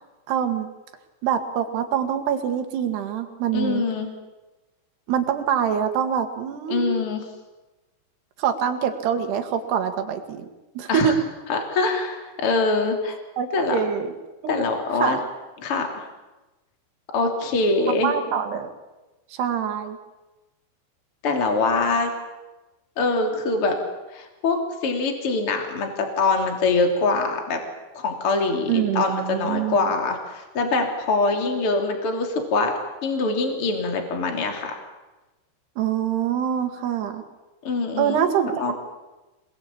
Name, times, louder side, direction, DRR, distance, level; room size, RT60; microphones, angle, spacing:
voice 1, 0.3-0.7 1.2-3.8 5.1-7.0 8.4-10.5 10.8-11.2 13.4-14.1 14.4-14.7 15.0-15.3 18.0-18.7 19.3-20.0 28.7-29.9 35.8-37.2 38.0-38.7, right 8 dB, 70° right, 7 dB, 3.9 m, -25 dB
voice 2, 3.5-4.1 6.7-7.2 10.9-11.1 11.5-13.2 13.5-13.8 14.5-15.2 15.6-16.1 17.1-18.1 21.2-22.1 23.0-23.8 24.1-24.6 24.8-27.6 27.9-32.7 33.0-34.8 37.6-38.2 38.6-38.7, left 3 dB, 35° left, 3 dB, 3.5 m, -23 dB
27.0 x 20.5 x 8.7 m, 1.1 s
omnidirectional pair, 5.0 m